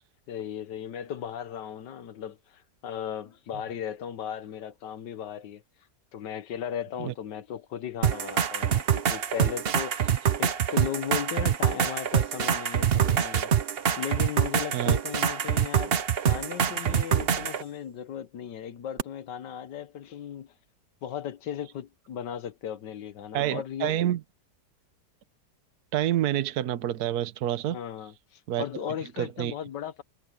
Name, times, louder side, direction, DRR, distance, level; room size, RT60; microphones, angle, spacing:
voice 1, 0.3-5.6 6.1-13.5 14.0-20.5 21.0-24.0 27.7-30.0, left 9 dB, 85° left, 1.7 m, -36 dB
sound 1, 8.0-17.6 19.0-19.1, right 8 dB, 45° right, 0.8 m, -25 dB
voice 2, 23.3-24.2 25.9-27.8 28.5-29.5, right 12 dB, 65° right, 1.4 m, -28 dB
omnidirectional pair, 1.8 m